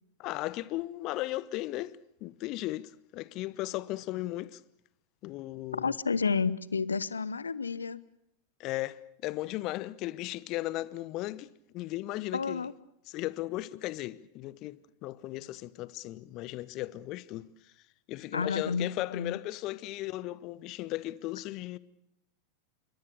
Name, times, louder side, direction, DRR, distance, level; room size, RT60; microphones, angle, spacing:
voice 1, 0.2-4.6 5.2-5.9 8.6-12.7 13.1-17.7 18.1-21.8, left 17 dB, 40° left, 0.9 m, -36 dB
voice 2, 5.7-8.0 12.3-12.7 18.3-19.4, left 5 dB, 75° left, 0.9 m, -31 dB
28.0 x 24.0 x 6.9 m
figure-of-eight pair, 90°, 0 cm